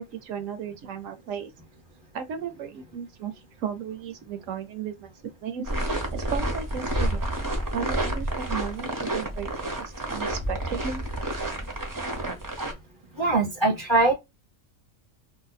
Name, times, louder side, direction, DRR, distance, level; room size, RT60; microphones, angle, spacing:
voice 1, 0.0-1.5 2.1-5.1 5.4-7.3 7.7-11.0, right 7 dB, 70° right, 0.9 m, -35 dB
sound 1, 5.6-12.7, right 1 dB, 25° right, 0.5 m, -29 dB
voice 2, 13.2-14.1, right 2 dB, 25° left, 0.7 m, -21 dB
2.7 x 2.2 x 4.0 m
omnidirectional pair, 1.5 m